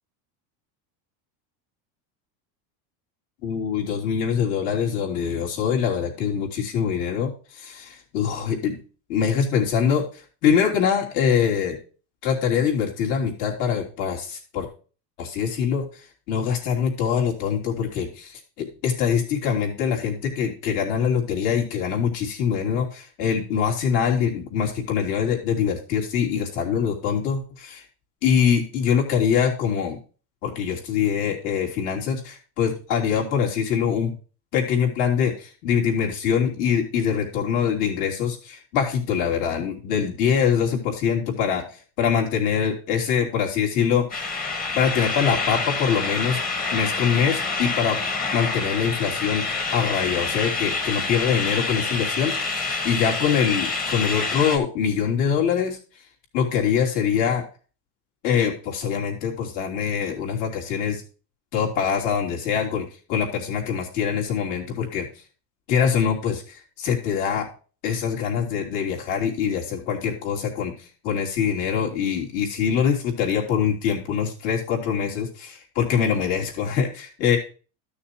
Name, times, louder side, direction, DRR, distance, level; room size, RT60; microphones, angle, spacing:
voice 1, 3.4-8.8 9.1-11.8 12.2-14.7 15.2-16.0 16.3-27.8 28.2-30.0 30.4-34.1 34.5-44.3 44.7-46.4 46.7-48.0 48.3-55.8 56.3-57.4 58.2-61.0 61.5-65.1 65.7-67.5 67.8-70.7 71.0-77.4, left 7 dB, 65° left, 0 dB, 3.2 m, -24 dB
sound 1, 44.1-54.6, left 4 dB, 20° left, 1.2 m, -27 dB
13.0 x 6.5 x 2.9 m, 0.36 s
cardioid pair, 170°, 46 cm